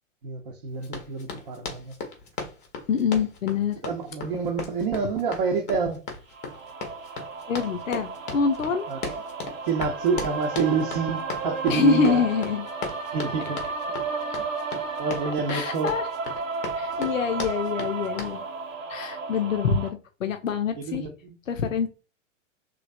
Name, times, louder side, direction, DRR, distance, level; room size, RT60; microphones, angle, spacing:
voice 1, 0.2-1.9 3.8-6.0 8.9-9.0 9.7-12.2 13.1-13.6 15.0-16.0 16.8-17.1 20.7-21.4, right 5 dB, 45° right, 0.6 m, -28 dB
Run, 0.8-18.4, left 4 dB, 20° left, 0.5 m, -37 dB
voice 2, 2.9-3.8 7.5-8.8 11.7-12.7 15.5-16.0 16.8-18.4 18.9-21.0 21.5-21.9, left 6 dB, 80° left, 0.5 m, -25 dB
sound 1, 6.3-19.9, right 4 dB, 80° right, 0.7 m, -33 dB
3.1 x 2.4 x 2.4 m
figure-of-eight pair, 100°, 39 cm